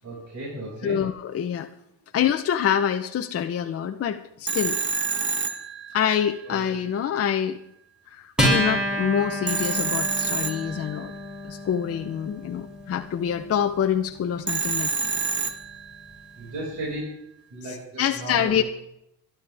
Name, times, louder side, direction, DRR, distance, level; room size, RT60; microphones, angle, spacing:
voice 1, 0.0-1.0 6.4-6.6 16.4-17.1 17.5-18.6, right 1 dB, 50° right, -5 dB, 6.3 m, -35 dB
voice 2, 0.8-1.7 2.1-4.8 5.9-7.6 8.1-11.1 11.4-15.1 18.0-18.6, left 9 dB, 40° left, 5 dB, 0.8 m, -26 dB
Telephone, 4.5-6.4 9.5-11.3 14.5-16.1, right 5 dB, 30° right, 1.3 m, -28 dB
Acoustic guitar, 8.4-15.2, equal, ahead, 6.5 m, -30 dB
24.0 x 11.5 x 3.5 m, 0.78 s
cardioid pair, 115°, 37 cm